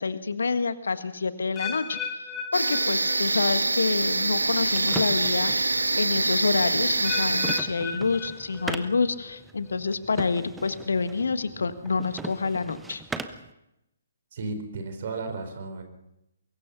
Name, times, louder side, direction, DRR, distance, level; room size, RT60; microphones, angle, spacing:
voice 1, 0.0-13.0, left 4 dB, 60° left, 11 dB, 1.5 m, -27 dB
sound 1, 1.6-3.6 3.8-4.3 4.9-5.0 7.0-9.0 9.3-9.8 10.4-10.5, left 6 dB, 15° left, 1.8 m, -36 dB
sound 2, 2.5-7.6, right 2 dB, 75° right, 1.6 m, -25 dB
sound 3, 4.3-13.5, right 3 dB, 5° right, 1.0 m, -40 dB
voice 2, 14.3-15.8, right 3 dB, 45° right, 7 dB, 4.5 m, -34 dB
24.0 x 22.0 x 5.7 m, 0.89 s
figure-of-eight pair, 130°, 0 cm